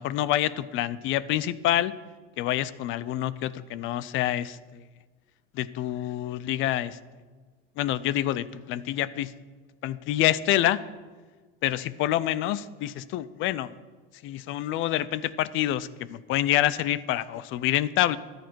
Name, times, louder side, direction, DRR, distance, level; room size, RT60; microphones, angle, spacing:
voice 1, 0.0-1.9 2.4-4.8 5.5-7.0 7.8-9.3 9.8-10.8 11.6-13.7 14.2-18.2, left 13 dB, 45° left, 17 dB, 0.6 m, -27 dB
14.0 x 10.5 x 4.6 m, 1.4 s
supercardioid pair, 130°, 29 cm